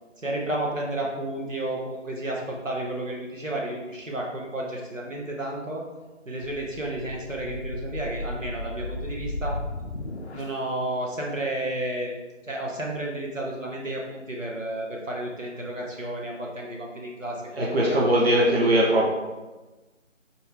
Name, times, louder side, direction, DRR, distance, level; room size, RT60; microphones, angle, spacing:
voice 1, 0.2-5.8 6.3-9.6 10.3-12.1 12.4-18.0, right 1 dB, 80° right, -2 dB, 1.2 m, -32 dB
sound 1, 6.5-10.7, left 1 dB, 60° left, 0.5 m, -35 dB
voice 2, 17.5-19.1, right 1 dB, 50° right, -4 dB, 0.9 m, -20 dB
4.3 x 3.7 x 3.3 m, 1.2 s
figure-of-eight pair, 165°, 38 cm